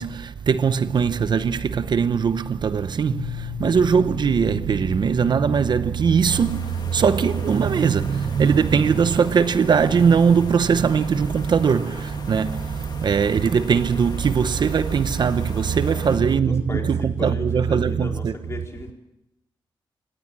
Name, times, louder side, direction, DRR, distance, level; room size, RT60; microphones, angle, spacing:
voice 1, 0.0-18.3, right 6 dB, 55° right, 0.8 m, -20 dB
Piano, 3.1-8.7, left 12 dB, 70° left, 6.5 m, -38 dB
sound 1, 6.3-16.2, left 5 dB, 55° left, 2.3 m, -41 dB
voice 2, 15.7-18.9, left 2 dB, 30° left, 4.3 m, -36 dB
25.0 x 19.0 x 7.5 m
wide cardioid pair, 145°, 9 cm